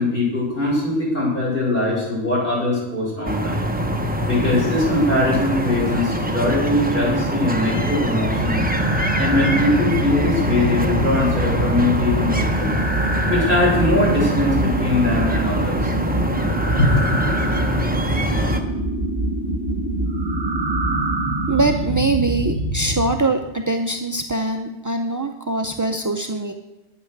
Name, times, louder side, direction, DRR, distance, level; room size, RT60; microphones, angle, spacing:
voice 1, 0.0-3.6 4.3-8.6 9.2-12.8 13.3-15.9 16.8-17.2, left 2 dB, 45° left, -6 dB, 6.3 m, -21 dB
sound 1, 3.2-18.6, right 1 dB, 10° right, 0.9 m, -24 dB
sound 2, 8.3-23.1, right 1 dB, 50° right, 2.7 m, -24 dB
voice 2, 21.5-26.5, right 3 dB, 25° right, 4 dB, 0.4 m, -22 dB
11.5 x 9.6 x 6.6 m, 1.0 s
omnidirectional pair, 1.3 m